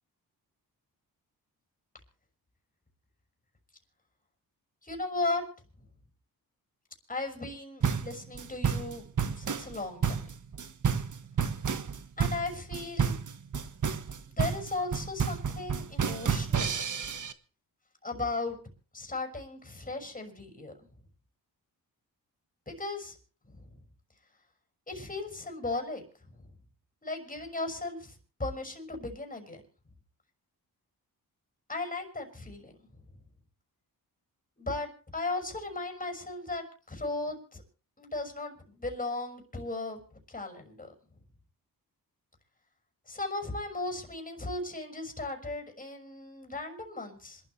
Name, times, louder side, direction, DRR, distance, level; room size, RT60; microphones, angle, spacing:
voice 1, 4.8-5.4 7.1-9.1 9.4-10.3 12.2-13.2 14.4-16.7 18.0-18.6 18.9-20.7 22.7-23.2 23.5-23.7 24.9-26.0 26.3-26.5 27.0-29.6 31.7-32.7 34.6-37.6 38.0-40.0 40.3-40.9 43.1-47.4, left 2 dB, 20° left, 3 dB, 5.9 m, -36 dB
sound 1, 7.8-17.3, right 6 dB, 50° right, 1.5 m, -30 dB
27.0 x 13.0 x 3.3 m, 0.36 s
cardioid pair, 80°, 38 cm